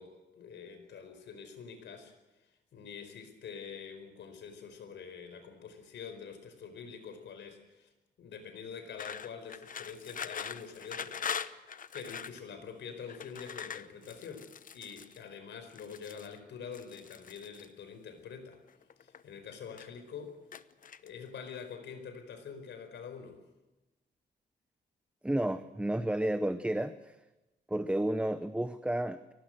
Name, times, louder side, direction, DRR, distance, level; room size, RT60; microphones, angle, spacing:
voice 1, 0.0-2.1 2.7-7.9 8.2-11.5 11.9-14.5 14.7-18.6 19.0-20.4 21.0-23.4, left 6 dB, 85° left, 8 dB, 4.7 m, -46 dB
sound 1, 9.0-12.4 13.1-15.2 15.7-16.3 16.7-17.6 18.5-19.2 19.5-20.1 20.5-21.3, left 7 dB, 50° left, 0.9 m, -42 dB
voice 2, 25.2-27.2 27.7-29.3, right 1 dB, 5° right, 11 dB, 0.8 m, -31 dB
24.0 x 18.5 x 7.8 m, 1.0 s
cardioid pair, 120°, 18 cm